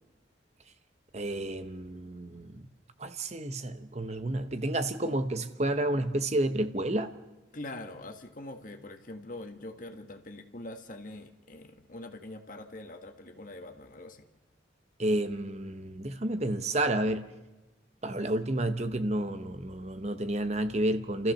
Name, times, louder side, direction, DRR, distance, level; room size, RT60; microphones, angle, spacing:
voice 1, 1.1-2.5 3.0-7.1 15.0-17.3 18.0-21.3, right 1 dB, 35° right, 9 dB, 0.9 m, -30 dB
voice 2, 7.5-14.3, left 2 dB, 45° left, 6 dB, 1.6 m, -43 dB
29.5 x 14.5 x 6.5 m, 1.1 s
head